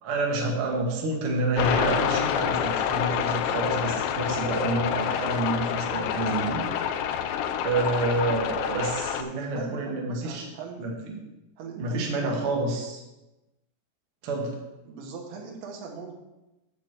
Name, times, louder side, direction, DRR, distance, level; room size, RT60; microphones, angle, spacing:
voice 1, 0.0-6.7 7.6-10.5 10.8-11.2 11.8-13.0 14.2-14.6, right 2 dB, 60° right, -1 dB, 1.4 m, -28 dB
sound 1, 1.6-9.2, left 9 dB, 85° left, 2.9 m, -27 dB
voice 2, 9.5-11.0 11.6-12.6 14.9-16.2, right 5 dB, 80° right, 0 dB, 3.6 m, -39 dB
8.4 x 7.9 x 4.6 m, 1.0 s
omnidirectional pair, 5.0 m